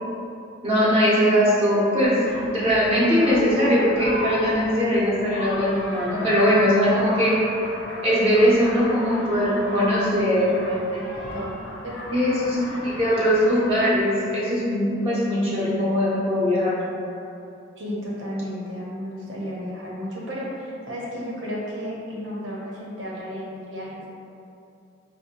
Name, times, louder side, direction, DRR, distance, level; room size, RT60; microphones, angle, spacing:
voice 1, 0.6-7.4 8.0-10.5 12.1-12.6 12.8-16.7, equal, 30° right, -8 dB, 0.6 m, -20 dB
sound 1, 2.3-14.0, left 1 dB, 70° left, 0.6 m, -36 dB
voice 2, 9.7-12.0 17.8-24.1, equal, 75° right, -5 dB, 0.8 m, -33 dB
4.7 x 2.1 x 2.8 m, 2.6 s
head